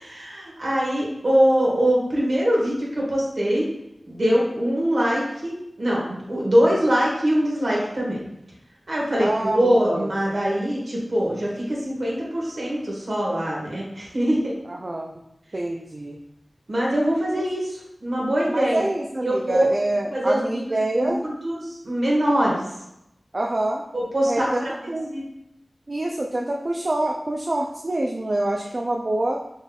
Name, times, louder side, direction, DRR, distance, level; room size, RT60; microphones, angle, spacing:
voice 1, 0.0-3.7 4.1-8.2 8.9-14.5 16.7-18.8 19.2-19.7 20.1-20.6 21.0-22.7 23.9-24.7 25.1-25.2, equal, 70° right, -4 dB, 1.4 m, -23 dB
voice 2, 9.2-10.1 14.7-15.1 15.5-16.2 18.5-21.2 23.3-23.8 24.3-25.1 25.9-29.4, right 1 dB, 50° right, 0 dB, 0.4 m, -26 dB
4.3 x 3.4 x 2.3 m, 0.82 s
cardioid pair, 40°, 0 cm